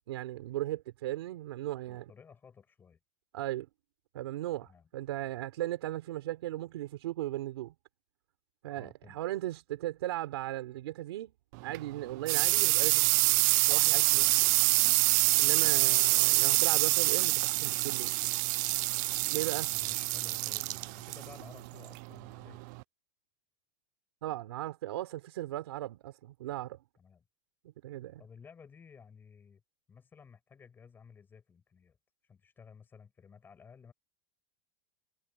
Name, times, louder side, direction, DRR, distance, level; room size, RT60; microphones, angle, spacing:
voice 1, 0.1-2.1 3.3-3.7 4.1-7.7 8.6-13.1 13.7-14.5 15.3-18.1 19.3-19.7 24.2-26.8 27.8-28.2, right 15 dB, 90° right, 4.1 m, -37 dB
voice 2, 1.9-3.0 4.6-4.9 8.7-9.2 15.7-15.9 19.3-22.6 27.0-27.2 28.2-29.6 29.9-32.0 32.2-33.9, left 6 dB, 15° left, 7.8 m, -55 dB
sound 1, 11.5-22.8, right 25 dB, 45° right, 0.4 m, -27 dB
supercardioid pair, 165°, 13 cm